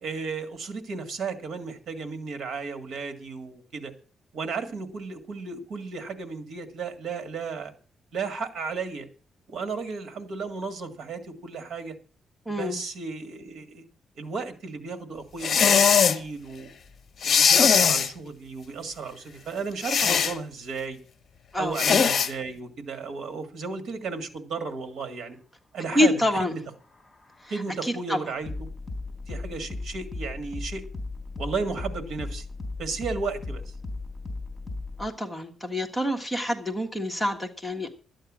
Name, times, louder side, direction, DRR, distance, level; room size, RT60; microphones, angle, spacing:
voice 1, 0.0-3.9 4.3-7.7 8.1-9.1 9.5-12.0 12.5-13.8 14.2-16.7 17.2-21.0 21.6-25.4 25.7-26.7 27.5-28.7 29.3-30.8 31.4-32.5 32.8-33.7, right 4 dB, 65° right, 8 dB, 1.8 m, -34 dB
voice 2, 12.4-12.8 21.5-21.8 25.9-26.6 27.4-27.5 27.8-28.2 35.0-37.9, left 1 dB, ahead, 1 dB, 1.5 m, -27 dB
sound 1, 15.4-16.2 17.2-18.1 19.8-20.3 21.7-22.3, left 7 dB, 45° left, 0.9 m, -20 dB
sound 2, 26.6-35.1, left 3 dB, 20° left, 3.9 m, -37 dB
13.0 x 9.0 x 6.2 m, 0.38 s
wide cardioid pair, 155°, 0 cm